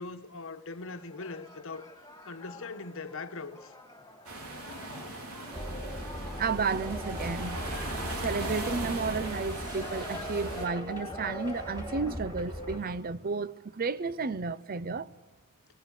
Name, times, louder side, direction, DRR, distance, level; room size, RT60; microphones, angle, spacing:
voice 1, 0.0-1.9 2.3-3.7, left 3 dB, 60° left, 1.2 m, -40 dB
sound 1, 0.8-12.2, left 2 dB, 15° left, 2.1 m, -45 dB
sound 2, 4.2-10.7, right 2 dB, 80° right, 3.7 m, -39 dB
sound 3, 5.5-12.8, equal, 20° right, 3.9 m, -39 dB
voice 2, 6.4-7.7 8.1-15.1, right 4 dB, 40° right, 0.6 m, -32 dB
19.5 x 18.5 x 8.3 m
head